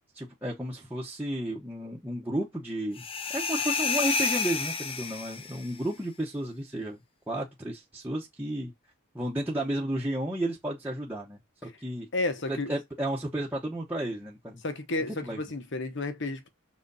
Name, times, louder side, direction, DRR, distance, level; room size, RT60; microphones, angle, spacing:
voice 1, 0.1-3.0 3.3-7.0 7.3-8.7 9.1-12.1 12.5-14.6 15.1-15.4, right 1 dB, 10° right, 1.1 m, -33 dB
sound 1, 3.0-5.7, left 5 dB, 25° left, 0.7 m, -30 dB
voice 2, 12.1-12.7 14.6-16.5, left 2 dB, 55° left, 1.2 m, -31 dB
6.5 x 4.1 x 4.1 m
head